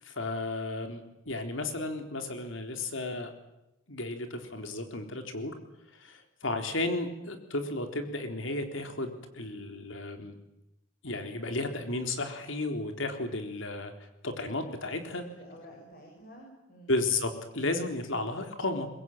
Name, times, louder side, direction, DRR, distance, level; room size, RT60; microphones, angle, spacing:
voice 1, 0.0-3.3 3.9-5.5 6.0-10.4 11.0-13.9 14.2-15.2 16.9-18.9, left 2 dB, 80° left, 6 dB, 3.8 m, -33 dB
voice 2, 15.1-16.9, equal, 45° left, 0 dB, 7.4 m, -51 dB
24.5 x 22.0 x 9.2 m, 0.91 s
head